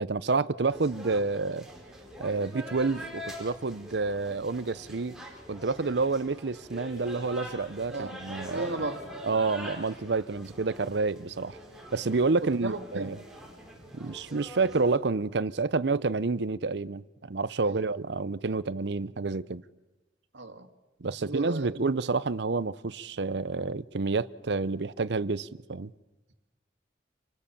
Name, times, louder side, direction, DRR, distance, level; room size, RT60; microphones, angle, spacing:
voice 1, 0.0-1.7 2.2-5.2 5.5-8.7 9.2-11.6 11.9-13.2 13.9-19.6 21.0-25.9, right 3 dB, 65° right, 0.7 m, -29 dB
sound 1, 0.7-14.9, equal, 5° right, 4.6 m, -44 dB
voice 2, 8.5-9.1 12.4-13.1 17.7-17.9 20.3-20.7 21.0-21.8, right 2 dB, 90° right, 1.9 m, -35 dB
27.5 x 19.0 x 7.1 m
head